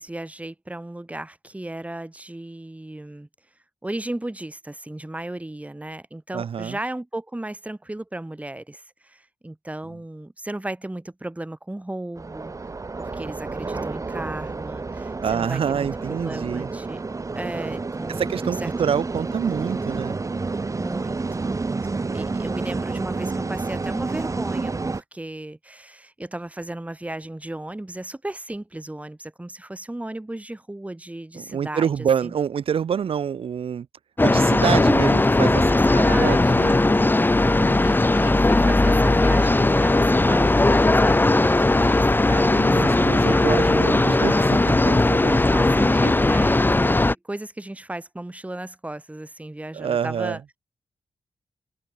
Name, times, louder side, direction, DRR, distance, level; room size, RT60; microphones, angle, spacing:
voice 1, 0.0-3.3 3.8-12.5 13.0-17.0 17.3-18.7 20.8-32.3 34.6-34.8 35.6-36.8 37.8-43.5 45.4-50.6, right 1 dB, 15° right, 1.5 m, -35 dB
voice 2, 6.3-6.8 15.2-16.7 18.1-20.2 31.3-33.9 34.2-35.6 35.9-36.7 37.4-37.8 42.5-45.4 45.8-46.2 49.7-50.4, right 7 dB, 75° right, 1.5 m, -27 dB
sound 1, 12.2-25.0, right 3 dB, 35° right, 0.8 m, -29 dB
sound 2, 34.2-47.1, left 2 dB, 20° left, 0.9 m, -18 dB
open air
supercardioid pair, 45°, 10 cm